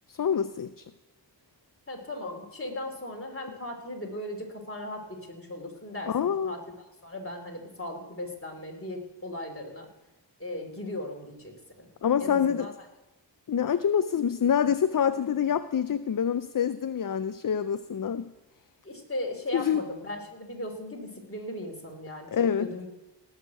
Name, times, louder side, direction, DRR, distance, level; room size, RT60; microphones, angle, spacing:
voice 1, 0.1-0.8 6.1-6.6 12.0-12.7 13.5-18.3 19.5-19.8 22.3-22.7, left 8 dB, 50° left, 12 dB, 0.5 m, -26 dB
voice 2, 1.9-6.6 7.0-9.9 10.4-11.9 12.2-12.7 18.8-22.9, left 1 dB, 30° left, 2 dB, 2.9 m, -37 dB
18.0 x 6.5 x 7.0 m, 1.0 s
wide cardioid pair, 45°, 44 cm